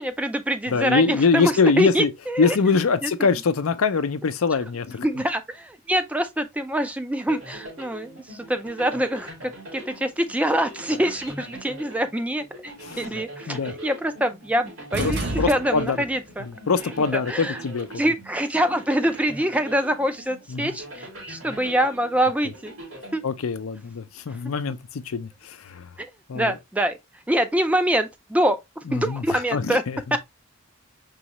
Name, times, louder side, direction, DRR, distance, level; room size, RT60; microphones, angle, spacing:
voice 1, 0.0-2.6 3.0-3.1 5.0-16.5 16.8-17.6 18.0-22.7 23.1-23.2 24.3-24.4 26.0-27.0 27.3-28.6 28.9-29.8 30.1-30.2, right 1 dB, 5° right, 0.3 m, -25 dB
voice 2, 0.7-2.1 2.4-5.1 12.8-13.7 15.0-16.0 16.7-17.9 20.5-20.7 23.2-25.9 26.3-26.5 28.9-30.2, left 4 dB, 85° left, 0.5 m, -23 dB
sound 1, 7.3-23.8, right 1 dB, 70° right, 2.7 m, -42 dB
sound 2, 14.9-16.2, right 2 dB, 55° right, 0.8 m, -29 dB
4.8 x 3.1 x 2.9 m
head